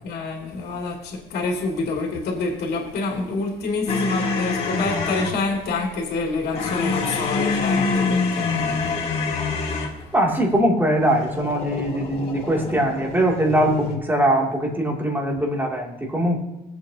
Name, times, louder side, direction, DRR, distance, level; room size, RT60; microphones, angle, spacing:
voice 1, 0.0-8.9, left 3 dB, 70° left, 0 dB, 2.7 m, -27 dB
sound 1, 3.9-5.4 6.5-10.0 10.9-14.0, left 4 dB, 40° left, 2.5 m, -26 dB
voice 2, 10.1-16.4, right 1 dB, 10° right, 0 dB, 2.6 m, -21 dB
20.0 x 8.2 x 2.8 m, 1.0 s
cardioid pair, 110°, 17 cm